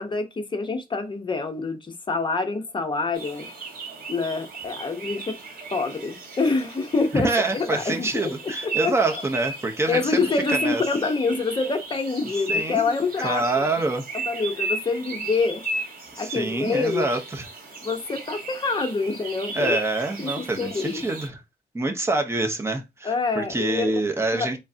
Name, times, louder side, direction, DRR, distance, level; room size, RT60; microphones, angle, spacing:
voice 1, 0.0-1.8 2.1-3.5 4.1-5.4 5.7-7.3 7.5-8.3 8.6-9.2 9.9-13.7 14.3-15.6 16.2-17.1 17.8-19.8 20.2-21.0 23.0-23.9 24.3-24.6, left 4 dB, 30° left, 0.9 m, -26 dB
sound 1, 3.1-21.3, right 2 dB, 60° right, 2.3 m, -35 dB
voice 2, 7.1-10.2 10.5-10.8 12.5-14.0 16.1-17.5 19.5-21.4 21.7-24.6, right 2 dB, 15° right, 0.9 m, -26 dB
3.7 x 3.4 x 2.7 m
cardioid pair, 120°, 16 cm